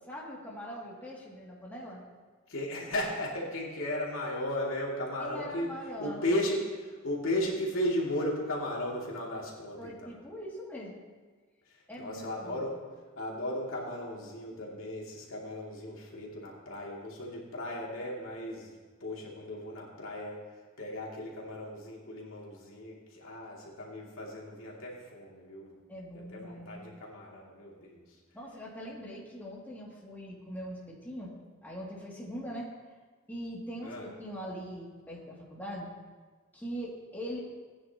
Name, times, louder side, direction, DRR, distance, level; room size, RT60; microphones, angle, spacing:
voice 1, 0.1-2.0 5.2-6.3 9.8-11.0 11.9-12.7 25.9-26.9 28.3-31.3 31.6-32.7 33.3-35.9 36.5-37.4, equal, 10° left, -6 dB, 2.5 m, -42 dB
voice 2, 2.5-5.7 6.0-10.1 12.0-12.8 13.1-18.7 19.0-20.4 20.8-25.8 26.1-28.0 33.8-34.1, left 1 dB, 75° left, -4 dB, 2.7 m, -35 dB
19.0 x 9.7 x 3.0 m, 1.4 s
head